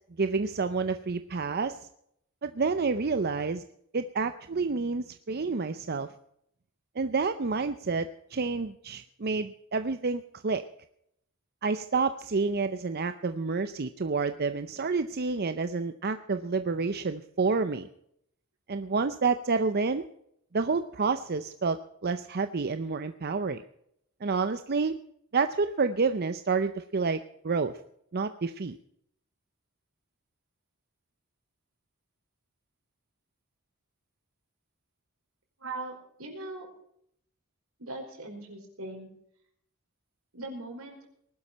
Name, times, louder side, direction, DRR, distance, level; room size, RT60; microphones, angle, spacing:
voice 1, 0.2-1.8 2.4-3.6 3.9-6.1 7.0-10.6 11.6-17.9 18.7-20.0 20.5-23.6 24.2-24.9 25.3-27.2 27.4-27.8 28.1-28.8, right 4 dB, 50° right, 10 dB, 0.6 m, -29 dB
voice 2, 35.6-36.7 37.8-39.1 40.3-41.0, right 2 dB, 80° right, 3 dB, 4.7 m, -40 dB
20.0 x 12.0 x 4.2 m, 0.71 s
head